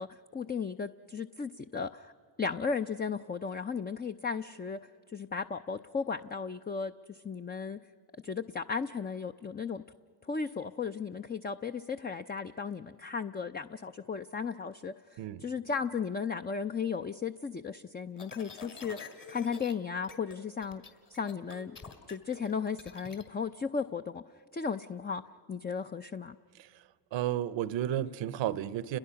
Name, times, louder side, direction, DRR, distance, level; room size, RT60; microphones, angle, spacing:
voice 1, 0.0-2.1 2.4-4.8 5.1-7.8 8.2-9.8 10.2-20.8 21.1-21.8 22.1-24.2 24.5-25.2 25.5-26.4, left 5 dB, 20° left, 8 dB, 0.5 m, -35 dB
sound 1, 18.2-19.7 20.0-20.4 20.6-23.2, left 5 dB, 45° left, 3.2 m, -48 dB
voice 2, 27.1-29.0, right 11 dB, 75° right, 17 dB, 0.9 m, -32 dB
30.0 x 21.5 x 5.8 m, 2.1 s
supercardioid pair, 60°, 45 cm